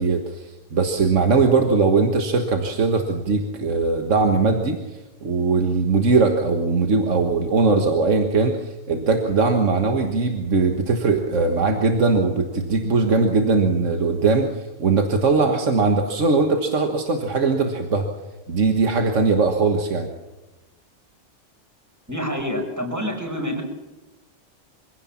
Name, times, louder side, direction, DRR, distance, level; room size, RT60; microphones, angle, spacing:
voice 1, 0.0-4.8 5.2-18.1 18.5-20.1, right 4 dB, 75° right, 4 dB, 1.9 m, -20 dB
voice 2, 22.1-23.6, equal, 15° right, 2 dB, 5.4 m, -27 dB
25.5 x 16.5 x 7.3 m, 1.1 s
omnidirectional pair, 1.3 m